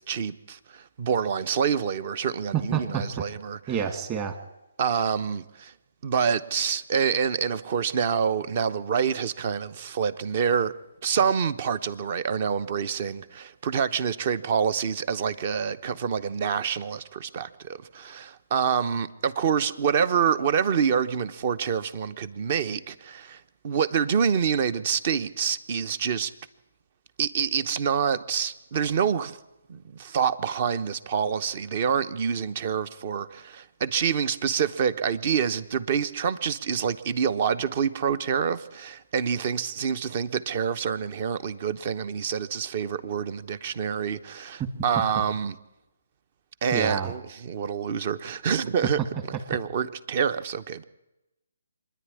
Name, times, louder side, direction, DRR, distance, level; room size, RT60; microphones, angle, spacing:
voice 1, 0.0-3.8 4.8-5.7 6.0-10.7 11.0-26.3 27.2-29.4 29.7-45.5 46.6-49.0 49.5-50.8, right 7 dB, 40° right, 0.9 m, -27 dB
voice 2, 2.5-3.2 3.7-4.4 46.7-47.1, right 8 dB, 25° right, 2.0 m, -28 dB
25.0 x 10.5 x 9.8 m
hypercardioid pair, 150°, 0 cm